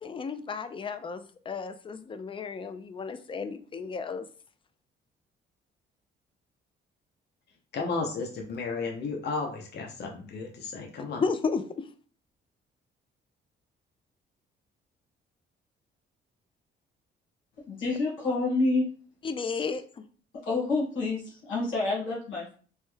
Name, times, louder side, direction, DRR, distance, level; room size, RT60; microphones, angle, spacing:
voice 1, 0.0-4.3 11.2-11.9 19.2-20.0, left 5 dB, 25° left, 10 dB, 0.4 m, -33 dB
voice 2, 7.7-11.2, left 4 dB, 55° left, 2 dB, 0.7 m, -33 dB
voice 3, 17.7-18.9 20.4-22.5, left 3 dB, 80° left, -6 dB, 1.4 m, -28 dB
3.1 x 2.2 x 3.1 m, 0.41 s
cardioid pair, 90°, 20 cm